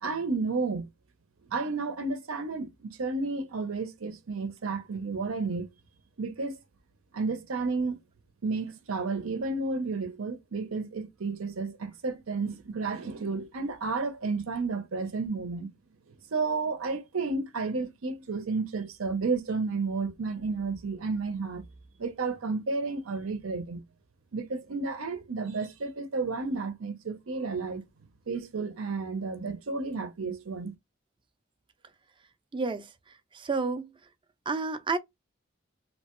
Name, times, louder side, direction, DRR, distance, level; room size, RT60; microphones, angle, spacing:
voice 1, 0.0-0.9 1.5-5.7 6.2-6.6 7.1-8.0 8.4-15.7 16.3-21.6 22.0-23.8 24.3-27.8 28.3-30.7, right 4 dB, 85° right, 0.7 m, -32 dB
voice 2, 32.5-32.9 33.3-33.9 34.5-35.0, right 4 dB, 25° right, 0.4 m, -30 dB
2.9 x 2.1 x 2.9 m
head